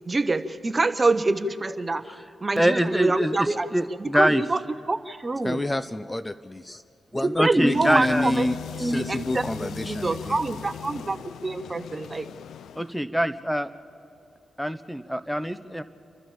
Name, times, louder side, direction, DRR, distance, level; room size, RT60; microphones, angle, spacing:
voice 1, 0.0-2.0 2.4-4.6 4.9-5.6 7.2-8.5 8.7-12.3, right 3 dB, 35° right, 11 dB, 1.1 m, -26 dB
voice 2, 2.6-3.5 3.7-4.4 7.4-8.3 12.8-13.7 14.6-15.8, equal, ahead, 13 dB, 1.2 m, -24 dB
voice 3, 5.4-6.8 7.1-10.4 12.8-12.9, left 2 dB, 20° left, 12 dB, 0.6 m, -29 dB
sound 1, 7.6-13.0, left 9 dB, 80° left, 0.4 m, -39 dB
29.5 x 12.0 x 7.3 m, 2.7 s
supercardioid pair, 45°, 0 cm